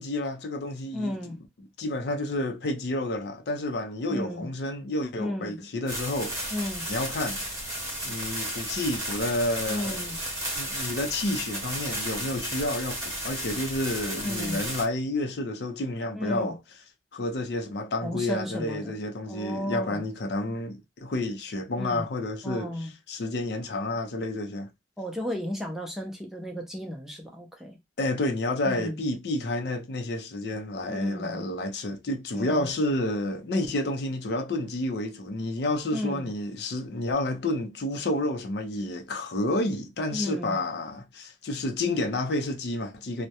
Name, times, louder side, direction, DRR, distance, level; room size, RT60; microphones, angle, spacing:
voice 1, 0.0-1.3 1.8-6.6 6.9-7.4 8.0-10.2 10.6-16.6 17.1-22.7 23.1-24.7 28.0-43.3, left 1 dB, 65° left, 0.5 m, -30 dB
voice 2, 0.9-1.4 4.1-4.5 5.2-5.6 6.5-6.9 9.7-10.2 14.2-14.6 16.1-16.5 18.0-18.9 19.3-20.0 21.8-22.1 22.4-22.9 25.0-27.8 28.6-29.0 30.9-31.4 32.3-32.7 35.9-36.3 40.1-40.6, left 1 dB, ahead, 0.5 m, -33 dB
sound 1, 5.9-14.8, right 1 dB, 20° right, 0.9 m, -33 dB
2.3 x 2.0 x 2.7 m
head